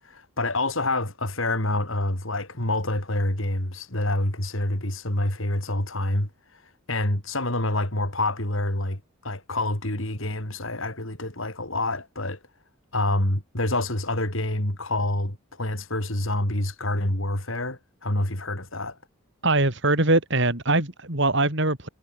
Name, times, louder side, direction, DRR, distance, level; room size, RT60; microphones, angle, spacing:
voice 1, 0.0-12.4 12.9-19.0, left 1 dB, 65° left, 5.0 m, -27 dB
voice 2, 19.4-21.9, right 2 dB, 60° right, 4.7 m, -22 dB
head